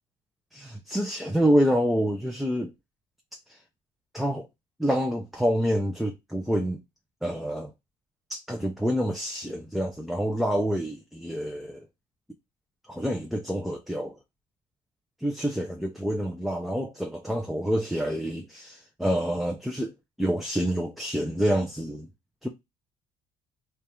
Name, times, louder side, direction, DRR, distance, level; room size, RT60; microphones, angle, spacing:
voice 1, 0.5-2.7 3.5-3.6 4.1-4.5 4.8-6.8 7.2-7.7 8.3-11.9 12.9-14.2 15.2-22.1 22.4-22.5, equal, ahead, 0.5 m, -27 dB
3.4 x 2.4 x 4.2 m
cardioid pair, 110°, 17 cm